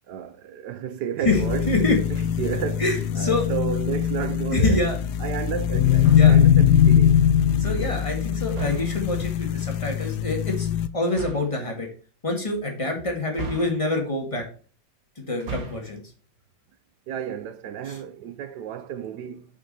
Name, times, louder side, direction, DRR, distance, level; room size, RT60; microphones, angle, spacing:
voice 1, 0.1-1.7 2.1-2.9 3.1-4.9 5.2-7.2 17.1-19.5, right 8 dB, 70° right, 1.3 m, -32 dB
sound 1, 1.3-10.9, left 9 dB, 70° left, 1.1 m, -21 dB
sound 2, 1.6-8.8, left 3 dB, 25° right, 2.7 m, -39 dB
voice 2, 2.8-3.5 4.5-5.0 6.1-6.4 7.6-11.9 12.2-14.4 15.2-16.0 17.9-18.0, left 2 dB, 15° left, 2.0 m, -26 dB
sound 3, 6.0-6.5 8.5-9.1 11.1-11.6 13.3-14.1 15.3-16.0, right 4 dB, 55° right, 1.7 m, -36 dB
6.3 x 6.0 x 4.3 m
omnidirectional pair, 2.0 m